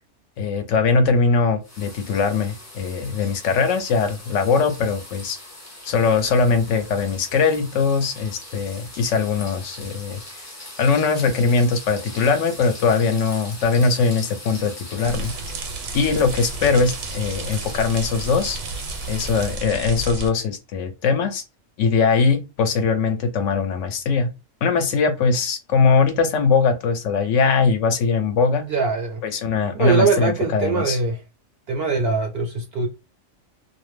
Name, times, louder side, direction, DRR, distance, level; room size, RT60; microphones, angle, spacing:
voice 1, 0.4-5.4 5.8-10.4 10.8-15.3 15.9-18.6 19.1-21.4 21.8-24.3 24.6-28.6 29.2-31.0, left 4 dB, 70° left, 0.9 m, -21 dB
sound 1, 1.6-19.6, left 1 dB, 25° left, 0.4 m, -40 dB
sound 2, 15.0-20.3, right 3 dB, 85° right, 1.0 m, -32 dB
voice 2, 28.6-29.2 29.8-31.2 31.7-32.9, right 4 dB, 65° right, 0.6 m, -22 dB
2.4 x 2.1 x 3.0 m
omnidirectional pair, 1.4 m